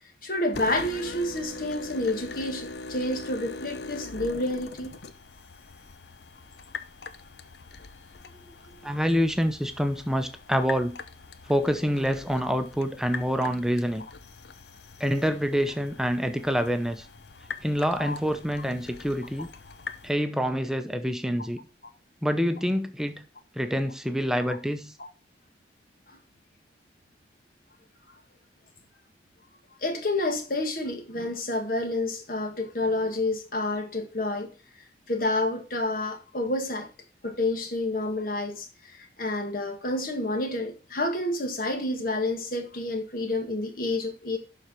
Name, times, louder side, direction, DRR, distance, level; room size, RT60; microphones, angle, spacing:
voice 1, 0.2-4.9 18.0-18.2 25.0-25.1 26.1-26.2 29.8-34.5 35.1-36.9 37.2-44.4, left 2 dB, 50° left, 1.6 m, -29 dB
sound 1, 0.5-20.1, left 3 dB, 70° left, 0.8 m, -42 dB
voice 2, 8.8-11.0 11.5-14.0 15.0-17.1 17.6-19.5 20.0-21.6 22.2-23.2 23.6-24.9, equal, 5° right, 0.8 m, -26 dB
12.0 x 4.4 x 4.6 m
head